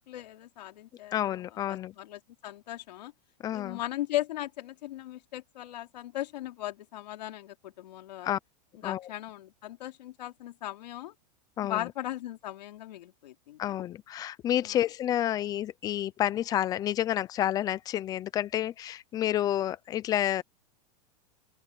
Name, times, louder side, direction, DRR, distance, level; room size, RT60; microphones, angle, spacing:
voice 1, 0.0-3.1 3.5-8.3 8.7-11.1 11.6-13.8 14.6-14.8, left 14 dB, 80° left, 3.3 m, -38 dB
voice 2, 1.1-1.9 3.4-3.8 8.2-8.4 8.8-9.0 11.6-11.8 13.6-20.4, left 12 dB, 15° left, 0.5 m, -29 dB
open air
supercardioid pair, 165°, 21 cm